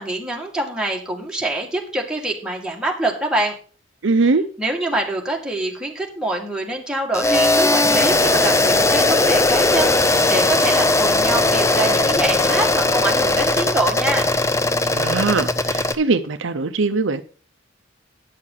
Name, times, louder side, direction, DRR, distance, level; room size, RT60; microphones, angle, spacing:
voice 1, 0.0-3.5 4.6-14.3, right 2 dB, 5° right, 2.0 m, -25 dB
voice 2, 4.0-4.4 14.9-17.2, right 3 dB, 75° right, 0.7 m, -21 dB
sound 1, 7.1-15.9, left 2 dB, 15° left, 0.6 m, -18 dB
9.7 x 6.6 x 5.6 m
head